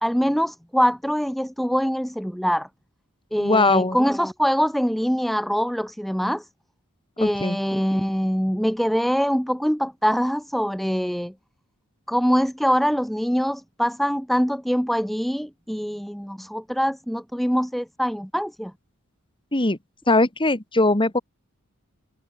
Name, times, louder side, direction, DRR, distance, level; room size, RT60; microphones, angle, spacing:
voice 1, 0.0-2.7 3.3-6.5 7.2-11.3 12.1-18.7, equal, ahead, 0.5 m, -23 dB
voice 2, 3.4-4.0 7.2-7.6 19.5-19.8 20.1-21.2, left 2 dB, 25° left, 2.0 m, -20 dB
head